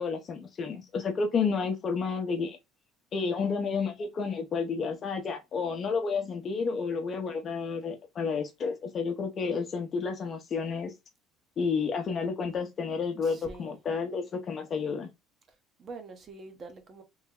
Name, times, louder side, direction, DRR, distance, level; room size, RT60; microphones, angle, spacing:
voice 1, 0.0-2.6 3.1-10.9 11.6-15.1, left 5 dB, 40° left, 0.7 m, -31 dB
voice 2, 13.2-13.8 15.8-17.0, right 3 dB, 40° right, 0.7 m, -45 dB
3.1 x 2.1 x 3.6 m
cardioid pair, 110°, 0 cm